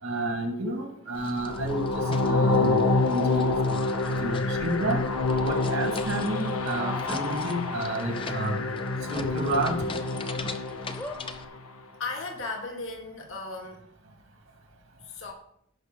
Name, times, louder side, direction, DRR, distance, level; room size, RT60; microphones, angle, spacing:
voice 1, 0.0-3.8 4.1-5.0 5.4-8.6 9.1-9.8, right 1 dB, 75° right, 3 dB, 2.0 m, -31 dB
sound 1, 1.1-11.5, left 3 dB, 25° left, 0.6 m, -42 dB
sound 2, 1.4-11.6, left 3 dB, 90° left, 0.9 m, -27 dB
sound 3, 6.9-7.0 7.4-7.5 9.2-9.9 10.4-10.5 10.9-11.2 12.1-12.2 12.4-12.5, left 1 dB, 10° left, 1.0 m, -40 dB
voice 2, 12.0-13.8 15.0-15.3, left 3 dB, 65° left, 1 dB, 2.2 m, -36 dB
17.0 x 5.8 x 3.7 m, 0.68 s
head